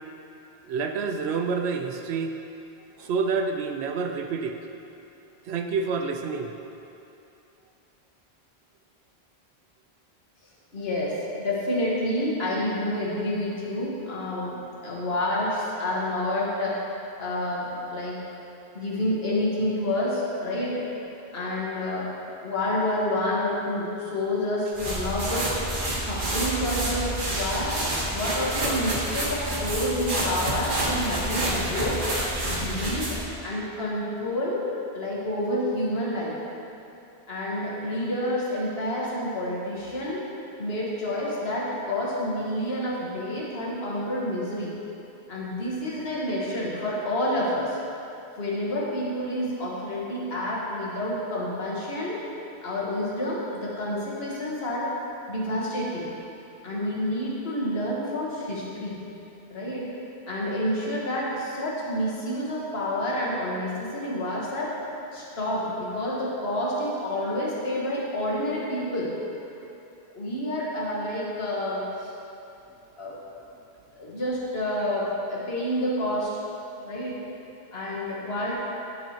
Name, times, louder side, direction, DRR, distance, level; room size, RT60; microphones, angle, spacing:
voice 1, 0.6-2.3 3.0-4.6 5.5-6.5, right 5 dB, 75° right, 5 dB, 0.8 m, -28 dB
voice 2, 10.7-16.8 17.2-18.2 18.7-20.8 21.3-22.1 22.4-25.5 26.0-27.8 28.1-32.0 32.5-33.1 33.4-34.6 34.9-36.4 37.3-40.2 40.6-44.7 45.3-47.8 48.4-52.2 52.6-54.9 55.3-56.1 56.6-59.0 59.5-59.9 60.3-64.7 65.1-69.2 70.1-72.1 73.0-73.2 73.9-76.4 76.8-77.2 77.7-78.5, left 1 dB, 70° left, -5 dB, 1.6 m, -29 dB
sound 1, 24.7-33.3, right 1 dB, 50° right, 1.3 m, -28 dB
10.5 x 6.1 x 2.9 m, 2.8 s
omnidirectional pair, 1.1 m